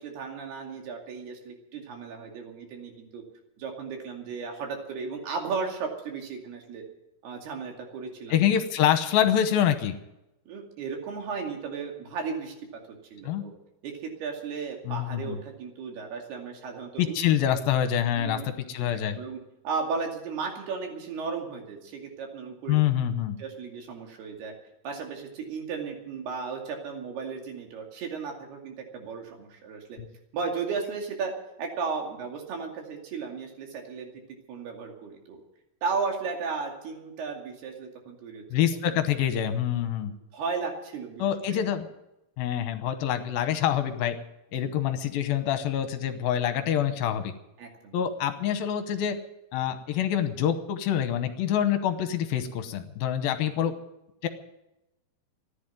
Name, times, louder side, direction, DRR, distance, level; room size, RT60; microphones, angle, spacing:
voice 1, 0.0-3.2 3.6-6.9 7.2-8.5 10.5-12.5 13.1-13.5 13.8-17.2 18.2-18.5 18.8-22.8 23.4-24.5 24.8-30.0 30.3-31.3 31.6-34.1 34.5-35.4 35.8-39.0 40.0-41.7 44.6-44.8 47.6-48.0, right 5 dB, 80° right, 1 dB, 4.5 m, -35 dB
voice 2, 8.3-10.0 13.3-13.4 14.9-15.4 17.0-19.2 22.7-23.4 38.5-40.1 41.2-41.9 42.4-44.2 44.5-47.3 47.9-49.2 49.5-53.7 54.2-54.3, left 10 dB, 75° left, 9 dB, 2.6 m, -26 dB
14.5 x 10.5 x 9.2 m, 0.90 s
omnidirectional pair, 4.5 m